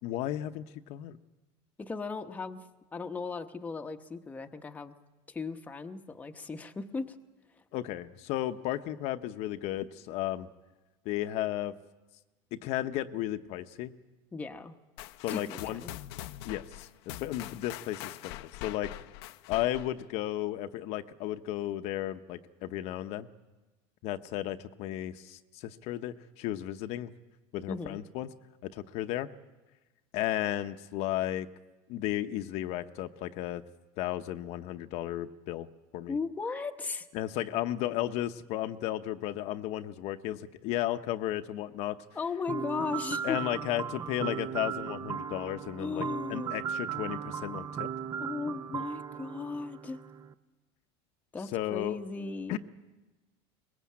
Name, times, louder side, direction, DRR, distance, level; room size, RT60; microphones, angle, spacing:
voice 1, 0.0-1.2 7.7-10.5 11.0-11.7 12.6-13.9 15.2-15.8 16.4-19.0 19.5-23.3 24.0-27.1 27.5-28.3 28.6-29.3 30.1-31.5 31.9-33.6 34.0-35.7 35.9-36.2 37.1-42.0 43.2-46.0 46.3-47.9 51.5-52.0 52.5-52.6, left 13 dB, 55° left, 9 dB, 0.9 m, -34 dB
voice 2, 1.8-2.6 2.9-4.9 5.3-7.2 14.3-14.8 15.3-15.9 27.7-28.0 36.1-37.1 42.1-43.4 45.8-46.6 48.2-50.0 51.3-52.6, left 4 dB, 10° left, 6 dB, 1.0 m, -36 dB
sound 1, 15.0-20.1, left 16 dB, 75° left, 0.7 m, -43 dB
sound 2, 42.5-50.3, right 8 dB, 25° right, 0.7 m, -37 dB
23.0 x 21.0 x 8.5 m, 1.1 s
cardioid pair, 150°, 13 cm